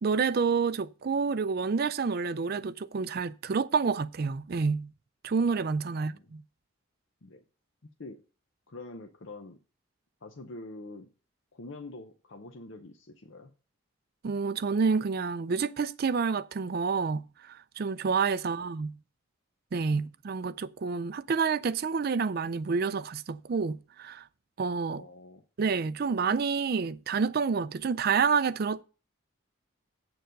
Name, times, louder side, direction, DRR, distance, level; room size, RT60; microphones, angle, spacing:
voice 1, 0.0-4.9 5.2-6.4 14.2-19.0 19.7-24.3 24.6-25.0 25.6-28.8, right 5 dB, 45° right, 0.4 m, -28 dB
voice 2, 5.9-6.2 7.2-7.4 8.0-8.2 8.7-9.6 10.2-11.1 11.5-13.5 18.5-18.7 19.9-20.1 24.9-25.4, left 2 dB, 60° left, 0.7 m, -45 dB
7.8 x 6.8 x 5.2 m
head